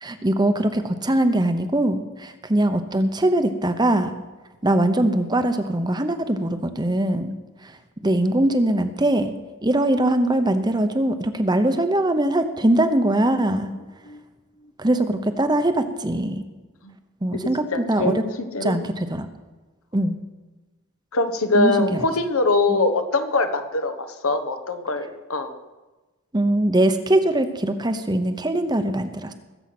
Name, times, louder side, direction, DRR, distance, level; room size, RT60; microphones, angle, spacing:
voice 1, 0.0-4.1 4.6-7.4 7.6-7.8 8.0-9.3 9.6-13.7 14.8-16.4 17.2-18.2 18.6-19.3 19.9-20.2 21.5-22.1 22.7-22.8 26.3-29.3, right 1 dB, 20° right, 8 dB, 0.9 m, -21 dB
voice 2, 17.7-18.2 18.5-18.8 21.1-25.6, left 3 dB, 80° left, 7 dB, 1.3 m, -23 dB
21.0 x 8.0 x 6.1 m, 1.2 s
head